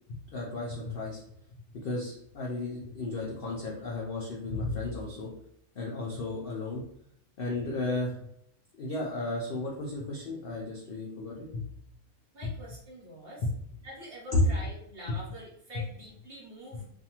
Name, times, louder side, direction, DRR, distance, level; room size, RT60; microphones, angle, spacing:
voice 1, 0.1-1.2 1.8-5.3 5.7-6.9 7.4-8.1 8.8-11.7 13.4-13.5 15.1-15.2, left 2 dB, 70° left, -4 dB, 0.5 m, -34 dB
voice 2, 12.3-13.4 13.8-16.9, equal, 50° right, -4 dB, 0.8 m, -45 dB
2.5 x 2.4 x 2.8 m, 0.74 s
omnidirectional pair, 1.6 m